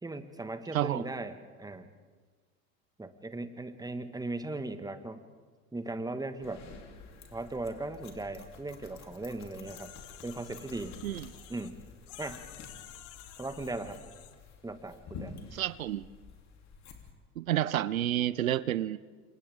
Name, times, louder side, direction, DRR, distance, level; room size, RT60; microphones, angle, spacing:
voice 1, 0.0-1.9 3.0-5.2 5.7-6.6 7.3-9.9 10.2-11.0 11.5-11.8 12.2-12.4 13.4-14.0 14.6-15.4, right 2 dB, 10° right, 9 dB, 1.6 m, -38 dB
voice 2, 0.7-1.0 11.0-11.3 15.5-16.1 17.4-19.0, right 12 dB, 85° right, 18 dB, 0.6 m, -30 dB
sound 1, 6.4-17.1, left 5 dB, 40° left, 3.3 m, -50 dB
sound 2, 9.6-11.7 12.1-14.3, left 13 dB, 65° left, 1.6 m, -51 dB
28.5 x 27.0 x 3.6 m, 1.5 s
hypercardioid pair, 70°, 40 cm